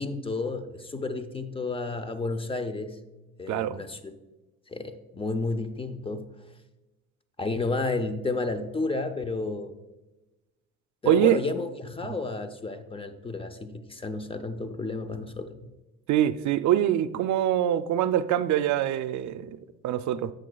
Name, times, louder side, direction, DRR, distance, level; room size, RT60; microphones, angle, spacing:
voice 1, 0.0-3.0 3.4-4.1 4.7-6.3 7.4-9.8 11.0-15.6, left 3 dB, 20° left, 0.5 m, -31 dB
voice 2, 3.5-3.8 11.1-11.4 16.1-19.5 19.8-20.3, right 11 dB, 70° right, 0.4 m, -24 dB
11.0 x 7.7 x 2.3 m
cardioid pair, 120°, 30 cm